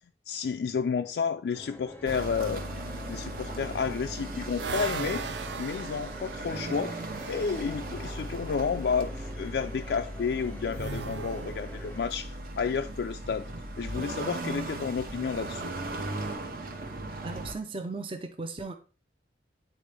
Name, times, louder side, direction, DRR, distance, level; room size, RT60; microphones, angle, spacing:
voice 1, 0.3-2.6 3.1-5.2 5.6-6.9 7.3-13.5 13.8-15.7, left 6 dB, 70° left, 0.3 m, -31 dB
sound 1, 1.5-12.1, left 1 dB, 10° left, 0.6 m, -45 dB
sound 2, 2.0-17.5, right 2 dB, 55° right, 0.9 m, -38 dB
sound 3, 3.8-7.7 10.7-12.1, right 5 dB, 80° right, 0.5 m, -38 dB
voice 2, 17.2-18.7, right 3 dB, 30° right, 0.5 m, -36 dB
9.1 x 4.2 x 3.3 m
head